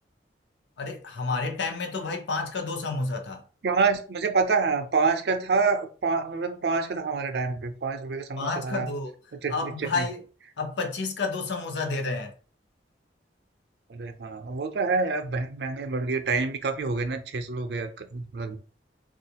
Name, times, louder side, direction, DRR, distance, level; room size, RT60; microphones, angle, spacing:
voice 1, 0.8-3.4 8.4-9.1 9.5-10.2 10.6-12.3, left 3 dB, 75° left, 0.6 m, -30 dB
voice 2, 3.6-8.9 9.4-10.1 13.9-18.6, right 4 dB, 60° right, 0.5 m, -27 dB
3.6 x 2.4 x 2.8 m
head